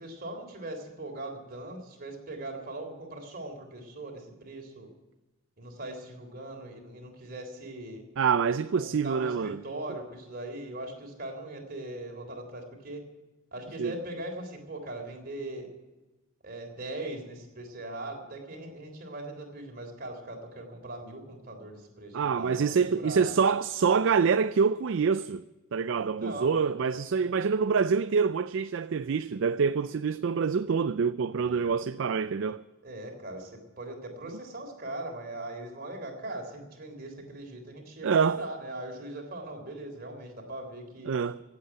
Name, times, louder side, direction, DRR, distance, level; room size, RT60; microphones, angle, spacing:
voice 1, 0.0-4.9 5.6-8.0 8.7-13.0 13.5-15.7 16.4-23.3 26.0-27.0 31.3-31.7 32.8-41.1, right 1 dB, 45° right, 3.6 m, -40 dB
voice 2, 8.2-9.6 13.8-13.9 22.1-25.4 25.7-32.6 38.0-38.4 41.1-41.4, right 5 dB, 60° right, 0.4 m, -26 dB
16.0 x 8.3 x 9.2 m
head